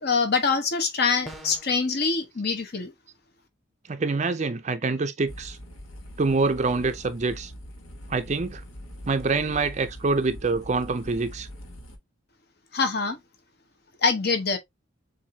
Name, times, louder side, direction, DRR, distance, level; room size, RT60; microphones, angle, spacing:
voice 1, 0.0-2.9 12.7-13.2 14.0-14.6, left 4 dB, 50° left, 1.1 m, -24 dB
sound 1, 1.3-1.8, equal, ahead, 0.7 m, -41 dB
voice 2, 3.9-5.6 6.2-7.5 8.1-8.6 9.1-11.5, right 3 dB, 35° right, 0.5 m, -25 dB
sound 2, 5.3-12.0, equal, 85° left, 1.3 m, -43 dB
7.2 x 2.7 x 2.8 m
head